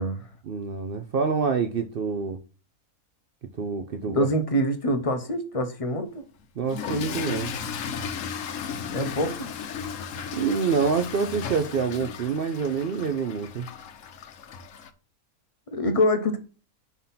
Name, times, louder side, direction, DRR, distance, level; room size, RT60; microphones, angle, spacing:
voice 1, 0.5-2.4 3.6-4.3 6.6-7.5 10.3-13.7, right 5 dB, 60° right, 0.6 m, -26 dB
voice 2, 4.0-6.2 8.9-9.5 15.7-16.4, equal, 35° left, 0.5 m, -25 dB
Toilet flush / Fill (with liquid), 6.6-14.9, left 6 dB, 65° left, 1.0 m, -35 dB
5.7 x 3.6 x 5.6 m
omnidirectional pair, 1.5 m